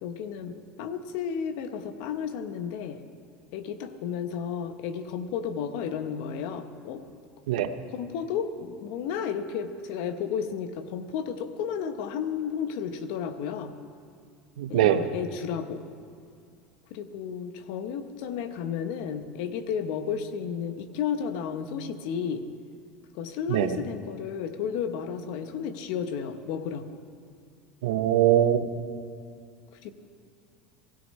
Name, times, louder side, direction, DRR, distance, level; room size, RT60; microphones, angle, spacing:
voice 1, 0.0-3.0 3.5-7.0 7.9-13.7 14.7-15.8 16.9-22.5 23.1-27.0 29.8-29.9, left 7 dB, 70° left, 9 dB, 0.9 m, -33 dB
voice 2, 14.6-15.0 23.5-23.7 27.8-28.7, right 11 dB, 90° right, 9 dB, 0.7 m, -22 dB
17.0 x 16.0 x 3.2 m, 2.2 s
supercardioid pair, 125°, 4 cm